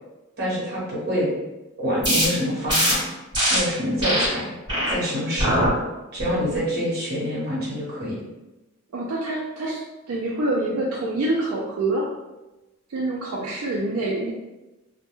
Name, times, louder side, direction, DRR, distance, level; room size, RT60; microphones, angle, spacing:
voice 1, 0.4-1.3 1.8-3.1 3.5-4.5 4.9-5.7 6.1-8.2, equal, 45° right, -6 dB, 1.0 m, -26 dB
sound 1, 2.0-2.3 2.7-2.9 3.3-3.6 4.0-4.3 4.7-4.9 5.4-5.7 6.2-6.6, equal, 20° right, 1.0 m, -21 dB
voice 2, 8.9-12.1 12.9-14.3, right 2 dB, 75° right, -3 dB, 0.4 m, -26 dB
2.2 x 2.1 x 2.9 m, 1.0 s
head